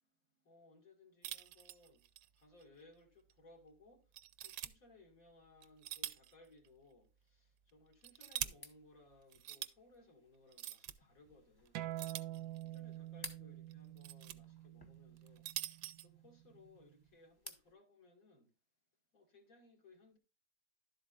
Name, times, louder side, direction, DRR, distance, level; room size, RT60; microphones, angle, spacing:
voice 1, 0.4-2.0 2.4-4.1 4.4-12.2 12.6-18.5 19.1-20.2, left 2 dB, 45° left, 2.5 m, -64 dB
sound 1, 1.2-2.3 2.6-2.7 3.3-3.4 4.1-4.7 5.6-6.3 6.6-6.7 7.7-8.5 9.3-9.7 10.5-10.9 12.0-12.8 13.7-14.4 15.2-16.1, right 13 dB, 70° right, 1.0 m, -44 dB
sound 2, 8.5-17.7, left 2 dB, 20° left, 0.7 m, -58 dB
sound 3, 11.8-16.9, right 15 dB, 90° right, 1.4 m, -47 dB
11.5 x 7.9 x 2.5 m
omnidirectional pair, 2.0 m